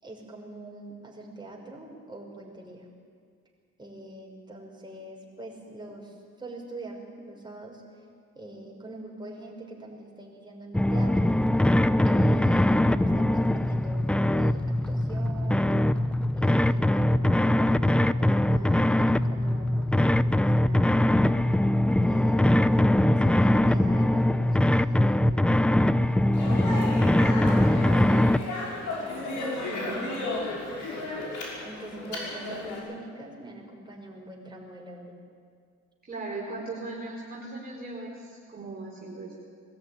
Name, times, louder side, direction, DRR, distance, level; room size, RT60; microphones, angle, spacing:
voice 1, 0.0-2.9 3.8-7.8 8.3-11.4 12.1-15.9 16.3-21.5 22.0-22.9 23.2-26.1 26.4-29.8 30.3-35.2, right 1 dB, 15° right, -1 dB, 5.5 m, -44 dB
sound 1, 10.7-28.4, left 1 dB, 5° left, 0.5 m, -22 dB
Speech, 26.3-32.8, left 2 dB, 75° left, 5.8 m, -34 dB
voice 2, 29.6-30.2 36.0-39.3, right 3 dB, 30° right, -4 dB, 4.2 m, -38 dB
21.5 x 13.5 x 9.9 m, 2.1 s
cardioid pair, 90°, 30 cm